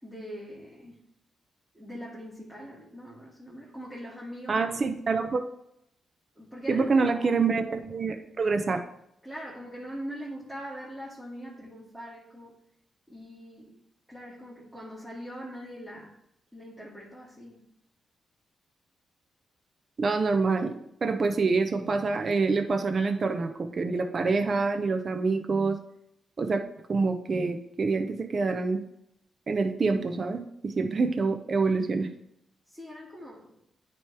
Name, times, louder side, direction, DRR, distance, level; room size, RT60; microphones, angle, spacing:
voice 1, 0.0-1.0 1.7-4.8 6.4-7.4 9.2-12.5 13.1-13.8 14.1-16.2 16.5-17.6 32.7-33.6, equal, 5° right, -8 dB, 2.2 m, -42 dB
voice 2, 4.5-5.4 6.7-8.8 20.0-20.7 21.0-25.8 26.4-26.6 26.9-28.8 29.5-32.1, right 4 dB, 45° right, 6 dB, 0.7 m, -26 dB
9.2 x 3.2 x 4.7 m, 0.74 s
cardioid pair, 65°, 0 cm